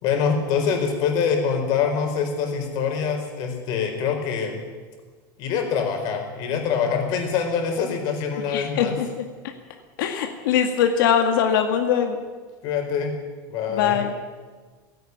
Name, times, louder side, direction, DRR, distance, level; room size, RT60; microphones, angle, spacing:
voice 1, 0.0-4.6 5.4-8.9 12.6-13.1 13.5-14.0, left 6 dB, 40° left, 4 dB, 4.4 m, -24 dB
voice 2, 8.5-9.2 10.0-12.2 13.7-14.1, left 8 dB, 90° left, 5 dB, 2.1 m, -22 dB
17.5 x 17.0 x 9.6 m, 1.4 s
supercardioid pair, 180°, 11 cm